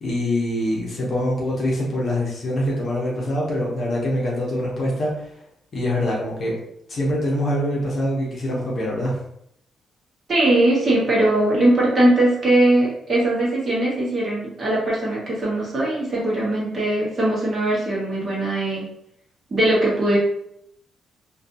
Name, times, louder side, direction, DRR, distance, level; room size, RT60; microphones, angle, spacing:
voice 1, 0.0-5.1 5.7-6.5 6.9-9.2, left 1 dB, 45° left, -4 dB, 0.8 m, -24 dB
voice 2, 10.3-18.9 19.5-20.2, right 1 dB, 30° right, -5 dB, 0.9 m, -20 dB
2.7 x 2.3 x 2.6 m, 0.73 s
cardioid pair, 160°, 0 cm